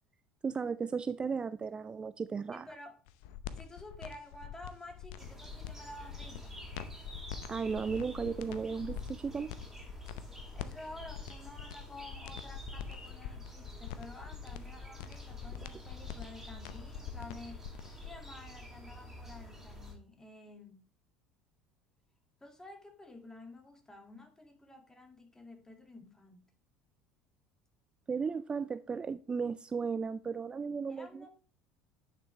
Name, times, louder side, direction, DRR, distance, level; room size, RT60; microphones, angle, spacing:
voice 1, 0.4-2.7 7.5-9.6 28.1-31.3, right 5 dB, 25° right, 0.3 m, -35 dB
voice 2, 2.5-3.0 3.5-6.7 10.5-17.6 18.0-20.8 22.4-26.4 30.9-31.3, left 2 dB, 15° left, 2.2 m, -51 dB
sound 1, 3.1-18.2, left 10 dB, 65° left, 0.7 m, -45 dB
sound 2, 5.2-20.0, equal, 5° right, 4.2 m, -48 dB
9.9 x 6.0 x 3.2 m
figure-of-eight pair, 65°, 4 cm